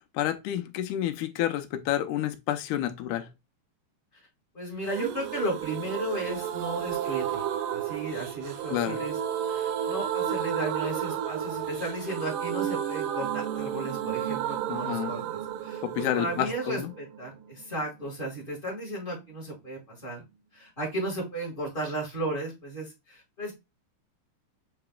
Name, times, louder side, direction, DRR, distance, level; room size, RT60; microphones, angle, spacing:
voice 1, 0.1-3.3 8.7-9.0 14.7-15.1 15.8-16.9, left 12 dB, 85° left, 2.1 m, -29 dB
voice 2, 4.5-20.2 20.5-23.5, right 1 dB, 20° left, 1.5 m, -35 dB
sound 1, 4.9-18.5 18.7-18.8 19.1-19.2, right 9 dB, 80° right, 2.1 m, -32 dB
7.7 x 2.9 x 2.3 m
omnidirectional pair, 3.6 m